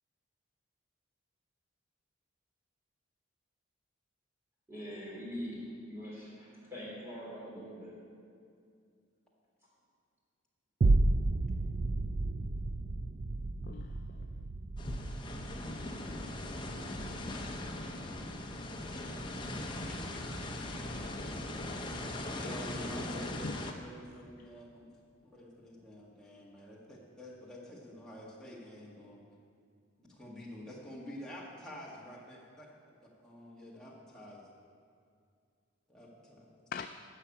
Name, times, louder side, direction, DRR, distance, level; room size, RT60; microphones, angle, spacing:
voice 1, 4.7-7.9 30.0-30.1, equal, 10° right, -7 dB, 3.6 m, -43 dB
sound 1, 10.8-19.4 19.8-19.9, right 2 dB, 40° right, 0.4 m, -33 dB
voice 2, 13.7-14.5 16.1-16.5 20.8-21.1 23.4-23.6 24.4-24.5 36.7-36.9, left 6 dB, 45° left, 8 dB, 0.3 m, -45 dB
sound 2, 14.8-23.7, left 1 dB, 25° left, 0.7 m, -39 dB
voice 3, 19.9-20.2 22.4-24.9 25.2-29.2 30.1-32.7 33.0-34.5 35.9-36.5, left 1 dB, 5° left, -5 dB, 1.9 m, -48 dB
12.5 x 5.7 x 8.4 m, 2.3 s
head